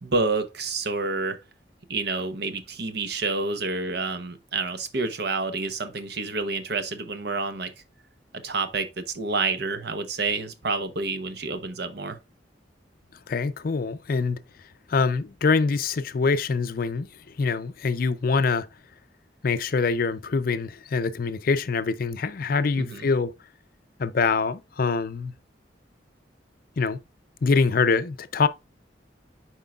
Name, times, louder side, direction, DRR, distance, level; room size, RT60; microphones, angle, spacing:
voice 1, 0.0-1.4 1.9-7.7 8.4-12.2 22.8-23.1, right 3 dB, 60° right, 0.9 m, -28 dB
voice 2, 13.3-14.4 14.9-17.1 17.4-18.7 19.4-23.3 24.0-25.3 26.8-27.0 27.4-28.5, left 4 dB, 55° left, 0.5 m, -24 dB
9.1 x 4.5 x 2.3 m
head